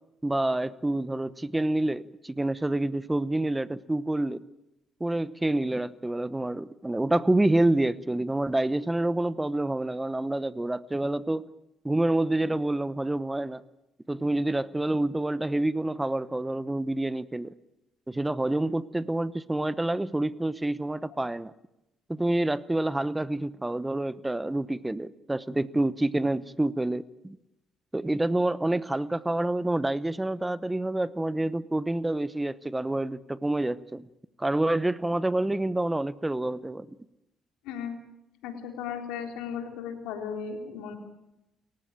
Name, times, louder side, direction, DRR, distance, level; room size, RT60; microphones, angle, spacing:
voice 1, 0.2-4.4 5.0-11.5 11.8-13.6 14.1-17.5 18.1-21.5 22.1-27.4 27.9-34.0 34.4-36.9, right 1 dB, 15° right, 17 dB, 0.9 m, -27 dB
voice 2, 37.6-38.0 38.4-41.0, left 7 dB, 80° left, 4 dB, 3.8 m, -36 dB
29.5 x 15.5 x 8.9 m, 0.91 s
hypercardioid pair, 55°, 0 cm